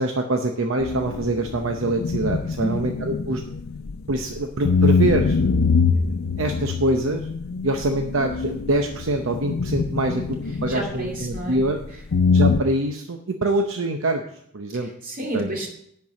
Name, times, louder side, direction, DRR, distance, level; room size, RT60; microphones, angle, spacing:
voice 1, 0.0-3.4 4.1-5.4 6.4-7.3 7.6-11.8 12.3-14.2 14.5-14.9 15.3-15.5, right 2 dB, 70° right, 4 dB, 0.8 m, -24 dB
sound 1, 0.8-4.3 4.6-11.9 12.1-12.6, left 5 dB, 75° left, 0.5 m, -23 dB
voice 2, 2.6-2.9 10.7-11.6 14.8-15.7, right 2 dB, 45° right, 0 dB, 2.5 m, -30 dB
10.5 x 4.6 x 7.4 m, 0.70 s
head